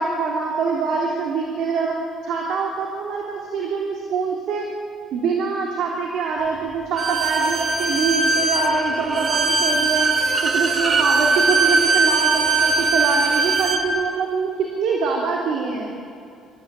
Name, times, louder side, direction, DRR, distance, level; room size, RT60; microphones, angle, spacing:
voice 1, 0.0-1.9 2.2-4.6 5.1-10.1 10.4-14.5 14.8-15.9, right 4 dB, 70° right, -1 dB, 3.3 m, -24 dB
Bowed string instrument, 7.0-13.8, right 3 dB, 40° right, 2.4 m, -20 dB
26.5 x 14.0 x 9.0 m, 2.5 s
cardioid pair, 125°, 0 cm